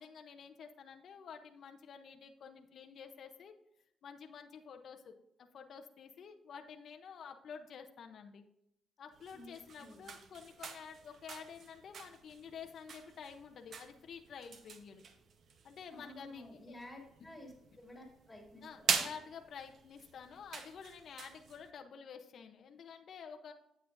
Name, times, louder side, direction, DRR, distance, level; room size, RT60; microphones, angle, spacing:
voice 1, 0.0-3.5 4.0-5.1 5.4-8.4 9.0-15.0 15.6-16.6 18.6-23.5, left 6 dB, 60° left, 5 dB, 0.8 m, -50 dB
sound 1, 9.1-21.7, right 6 dB, 60° right, 1.0 m, -44 dB
voice 2, 9.3-10.1 15.9-19.1, left 1 dB, 10° left, -1 dB, 3.5 m, -53 dB
9.3 x 8.4 x 2.6 m, 0.79 s
cardioid pair, 90°, 0 cm